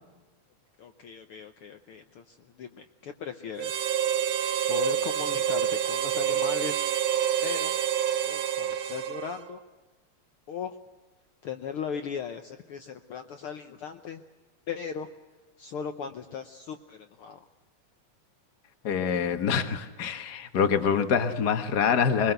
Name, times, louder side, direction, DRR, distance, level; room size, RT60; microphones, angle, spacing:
voice 1, 0.8-3.8 4.7-6.9 7.4-7.8 8.1-9.6 10.5-10.8 11.4-14.2 14.7-15.1 15.6-17.4, left 7 dB, 70° left, 7 dB, 1.3 m, -38 dB
Harmonica, 3.6-9.5, right 9 dB, 85° right, 2.6 m, -27 dB
voice 2, 18.8-22.3, left 7 dB, 45° left, 8 dB, 1.4 m, -25 dB
23.0 x 21.0 x 7.9 m, 1.2 s
omnidirectional pair, 3.5 m